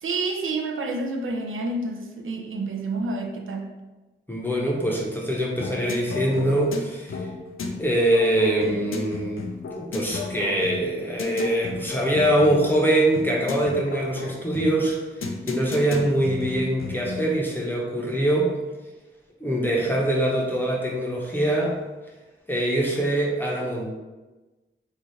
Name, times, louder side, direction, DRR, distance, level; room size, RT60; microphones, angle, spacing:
voice 1, 0.0-3.7, right 3 dB, 75° right, 3 dB, 0.5 m, -29 dB
voice 2, 4.3-7.3 7.8-9.4 9.7-15.0 15.5-18.5 19.4-21.8 22.5-23.9, right 1 dB, 10° left, -3 dB, 0.7 m, -23 dB
sound 1, 5.6-17.4, left 3 dB, 75° left, 0.5 m, -34 dB
3.2 x 2.3 x 4.0 m, 1.1 s
wide cardioid pair, 135°, 21 cm